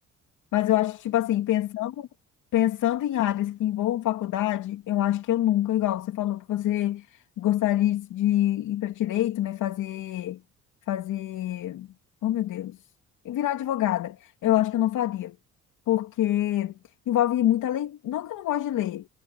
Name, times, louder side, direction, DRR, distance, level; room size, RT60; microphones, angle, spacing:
voice 1, 0.5-2.1 2.5-10.4 10.9-11.9 12.2-12.8 13.2-15.3 15.9-16.7 17.1-19.1, left 13 dB, 85° left, 2.8 m, -26 dB
cardioid pair, 90°, 30 cm